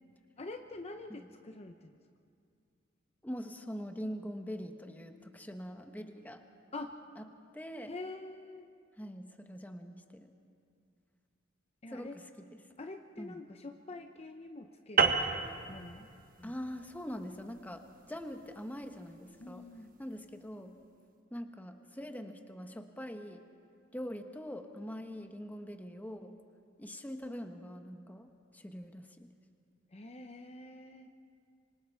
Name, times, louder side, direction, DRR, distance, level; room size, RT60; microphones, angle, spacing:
voice 1, 0.4-1.9 6.7-7.0 7.9-8.7 11.8-12.2 12.8-15.3 15.7-16.1 16.4-16.5 19.4-19.9 29.9-31.1, left 2 dB, 35° left, 6 dB, 0.7 m, -46 dB
voice 2, 3.2-6.4 7.2-7.3 7.5-7.9 9.0-10.3 11.9-12.5 13.2-13.4 16.4-19.7 20.0-20.8 21.3-23.5 23.9-26.4 26.8-29.3, equal, 10° left, 6 dB, 1.1 m, -43 dB
sound 1, 15.0-19.7, right 5 dB, 45° right, 1.1 m, -33 dB
26.0 x 25.0 x 4.5 m, 2.3 s
head